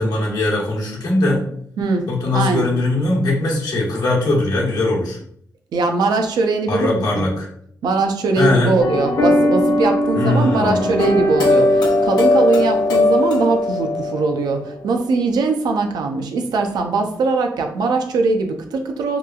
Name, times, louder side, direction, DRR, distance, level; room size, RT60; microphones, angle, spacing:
voice 1, 0.0-1.4 2.1-5.2 6.7-7.5 8.4-8.8 10.1-10.9, left 2 dB, 70° left, -2 dB, 0.9 m, -20 dB
voice 2, 1.8-2.7 5.7-7.3 7.8-19.2, right 3 dB, 85° right, 4 dB, 0.4 m, -21 dB
sound 1, 8.8-14.7, left 2 dB, 85° left, 0.5 m, -18 dB
2.9 x 2.3 x 2.2 m, 0.66 s
cardioid pair, 75°, 7 cm